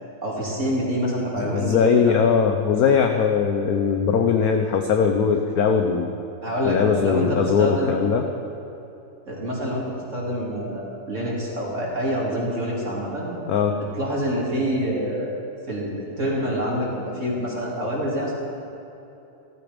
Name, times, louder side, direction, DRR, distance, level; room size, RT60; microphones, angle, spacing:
voice 1, 0.2-2.3 6.4-7.9 9.3-13.3 13.7-15.3 15.7-18.4, equal, 40° right, -4 dB, 3.1 m, -26 dB
voice 2, 1.4-6.1 6.6-8.2 13.5-13.8, left 6 dB, 60° left, 4 dB, 1.1 m, -20 dB
15.0 x 14.0 x 5.2 m, 2.9 s
omnidirectional pair, 2.1 m